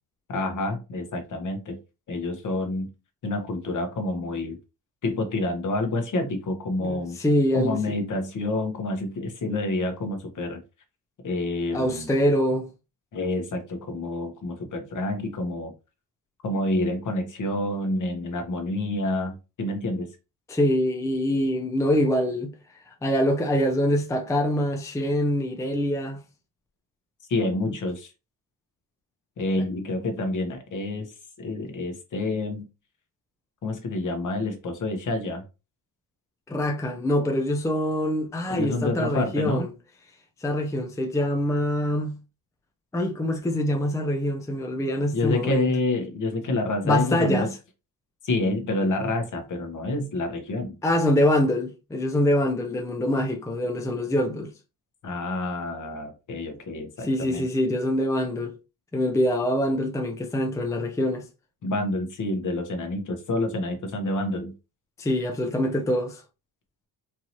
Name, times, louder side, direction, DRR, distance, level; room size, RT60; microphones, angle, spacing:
voice 1, 0.3-1.8 2.1-2.9 3.2-4.6 5.0-7.2 7.5-10.6 11.2-12.1 13.1-15.7 16.4-20.1 27.3-28.1 29.4-32.6 33.6-35.4 38.5-39.6 45.1-47.5 48.2-50.8 55.0-57.5 61.6-64.5, left 2 dB, 50° left, 1.2 m, -28 dB
voice 2, 6.8-8.0 11.7-12.7 20.5-22.5 22.9-26.2 36.5-39.7 40.4-42.2 42.9-45.7 46.8-47.5 50.8-54.5 57.0-58.6 58.9-61.3 65.0-66.2, left 1 dB, 10° left, 0.6 m, -24 dB
4.6 x 2.7 x 3.0 m
cardioid pair, 140°, 39 cm